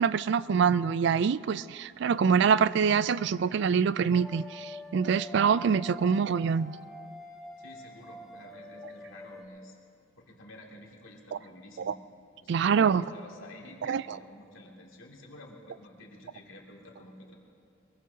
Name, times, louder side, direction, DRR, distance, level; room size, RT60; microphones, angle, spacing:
voice 1, 0.0-6.7 11.9-12.0 12.5-13.0 13.9-14.2, right 6 dB, 60° right, 17 dB, 0.3 m, -25 dB
sound 1, 4.1-9.4, left 2 dB, ahead, 1.1 m, -46 dB
voice 2, 7.6-9.8 10.2-12.0 12.4-17.3, left 1 dB, 90° left, -2 dB, 2.4 m, -50 dB
22.5 x 22.0 x 2.8 m, 2.5 s
head